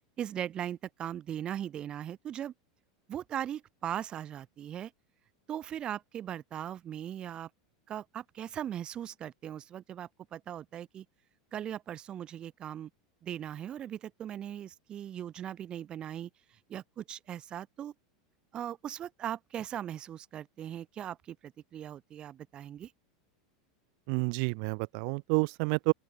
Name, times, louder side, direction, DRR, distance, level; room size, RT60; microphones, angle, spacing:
voice 1, 0.2-2.5 3.1-4.9 5.5-7.5 7.9-11.0 11.5-12.9 13.2-17.9 18.5-22.9, right 10 dB, 30° right, 2.7 m, -39 dB
voice 2, 24.1-25.9, right 40 dB or more, 60° right, 0.8 m, -29 dB
open air
supercardioid pair, 125°, 3 cm